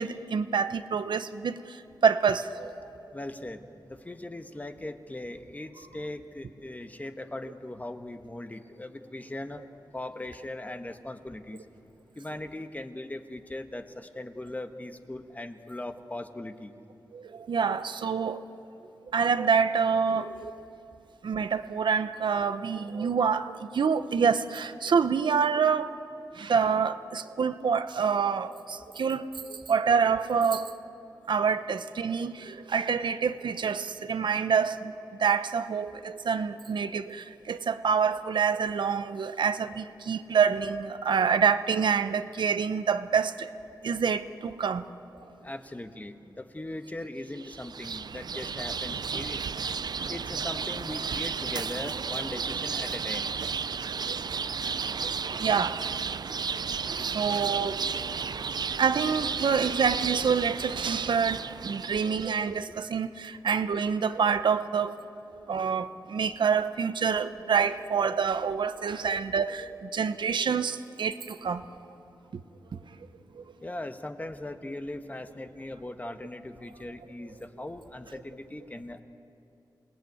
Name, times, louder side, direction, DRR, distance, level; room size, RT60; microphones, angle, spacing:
voice 1, 0.0-1.6 2.0-2.7 17.1-18.4 19.1-20.5 21.2-25.9 26.4-30.8 31.3-34.9 35.2-43.5 43.8-44.9 54.1-54.2 54.8-55.1 55.4-55.8 56.5-57.8 58.8-65.0 65.5-71.6, right 6 dB, 90° right, 0.8 m, -27 dB
voice 2, 3.1-9.6 9.9-11.7 12.2-16.7 45.4-49.4 50.1-53.3 55.3-55.4 62.7-62.8 73.6-79.0, left 1 dB, 20° left, 1.3 m, -39 dB
sound 1, 47.3-62.5, right 6 dB, 65° right, 0.5 m, -33 dB
28.0 x 19.5 x 9.4 m
wide cardioid pair, 95°, 8 cm